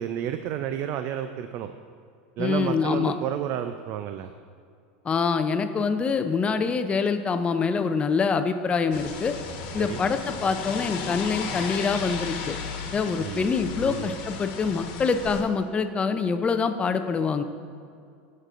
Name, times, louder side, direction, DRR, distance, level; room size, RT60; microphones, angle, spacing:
voice 1, 0.0-1.7 2.4-4.3 9.8-10.0 13.2-13.5 13.8-14.1, right 10 dB, 45° right, 9 dB, 0.4 m, -31 dB
voice 2, 2.4-3.1 5.0-9.3 9.7-12.6 12.9-17.4, left 5 dB, 20° left, 8 dB, 0.5 m, -25 dB
sound 1, 8.9-15.4, left 5 dB, 60° left, 1.2 m, -35 dB
15.5 x 6.5 x 2.5 m, 2.3 s
supercardioid pair, 130°, 6 cm